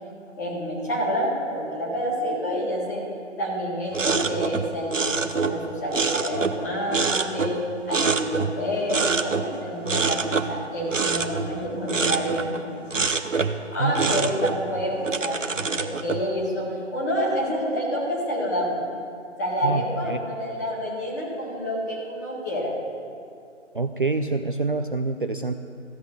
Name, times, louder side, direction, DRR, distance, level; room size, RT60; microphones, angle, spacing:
voice 1, 0.4-3.0 3.4-7.6 7.9-12.8 13.7-18.8 19.4-22.7, equal, 15° left, -5 dB, 1.9 m, -28 dB
sound 1, 3.9-6.6 6.9-8.6 8.9-9.5 9.8-12.6 12.9-13.6 13.9-16.2, right 4 dB, 85° right, 1.0 m, -26 dB
voice 2, 19.6-20.2 23.7-25.5, right 3 dB, 45° right, 7 dB, 0.4 m, -26 dB
14.5 x 6.2 x 6.8 m, 2.4 s
figure-of-eight pair, 155°, 37 cm